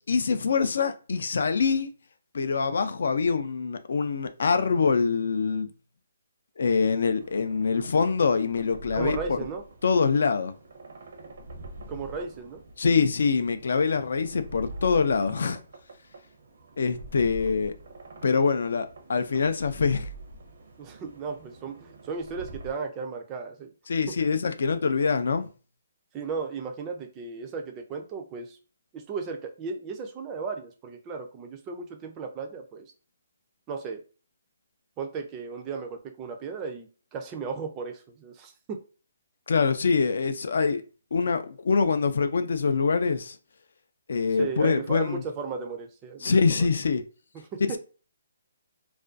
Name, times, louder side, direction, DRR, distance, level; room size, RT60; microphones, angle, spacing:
voice 1, 0.1-1.9 2.3-5.7 6.6-9.4 9.8-10.5 12.8-15.6 16.8-17.7 18.2-20.1 23.9-25.5 39.5-40.8 41.1-43.4 44.1-45.2 46.2-47.0, left 5 dB, 65° left, 0.3 m, -24 dB
sound 1, 7.2-22.7, right 1 dB, 60° right, 0.6 m, -44 dB
voice 2, 8.9-9.6 11.9-12.6 20.8-23.7 24.1-24.2 26.1-28.6 28.9-32.9 33.7-34.0 35.0-38.8 44.4-46.7 47.3-47.8, right 5 dB, 15° right, 0.3 m, -35 dB
2.4 x 2.2 x 2.4 m
hypercardioid pair, 165°, 0 cm